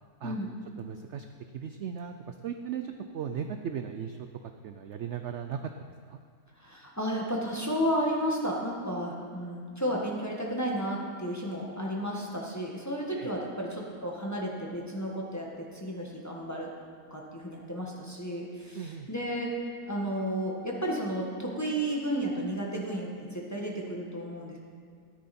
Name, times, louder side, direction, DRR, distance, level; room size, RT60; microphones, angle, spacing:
voice 1, 0.8-1.3 1.5-5.7 6.1-6.2 13.2-13.3 18.7-19.1, right 8 dB, 80° right, 6 dB, 0.6 m, -37 dB
voice 2, 6.6-16.7 17.1-19.5 19.9-24.6, equal, 10° left, -3 dB, 1.3 m, -32 dB
13.5 x 10.5 x 4.3 m, 2.1 s
omnidirectional pair, 1.8 m